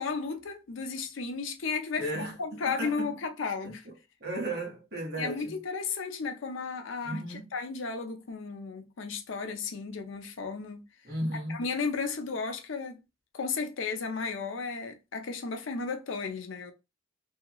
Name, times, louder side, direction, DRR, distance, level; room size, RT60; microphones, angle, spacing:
voice 1, 0.0-2.1 2.4-3.9 5.2-10.8 11.5-13.0 13.3-16.7, left 4 dB, 85° left, 0.6 m, -34 dB
voice 2, 2.0-3.1 3.6-3.9 4.2-5.6 7.0-7.5 11.0-11.6, right 1 dB, 55° right, 1.1 m, -35 dB
2.8 x 2.3 x 2.9 m
head